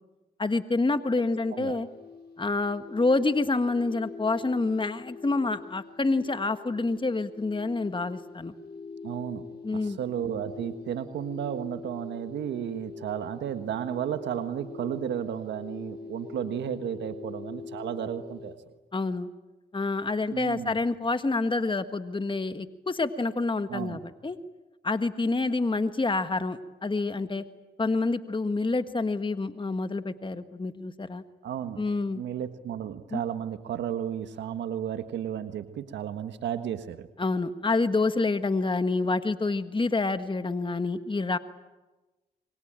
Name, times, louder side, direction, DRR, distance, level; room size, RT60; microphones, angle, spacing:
voice 1, 0.4-1.9 2.4-8.5 9.6-10.0 18.9-19.3 19.7-24.4 24.8-27.4 27.8-31.2 31.8-32.2 33.1-33.2 37.2-41.4, left 3 dB, 25° left, 10 dB, 1.5 m, -27 dB
sound 1, 1.3-18.6, left 4 dB, 65° left, 6.2 m, -44 dB
voice 2, 9.0-9.4 9.7-18.6 20.3-20.8 23.7-24.0 31.4-31.8 32.1-37.1, right 9 dB, 85° right, 9 dB, 1.5 m, -33 dB
27.0 x 23.5 x 9.0 m, 1.1 s
supercardioid pair, 50°, 18 cm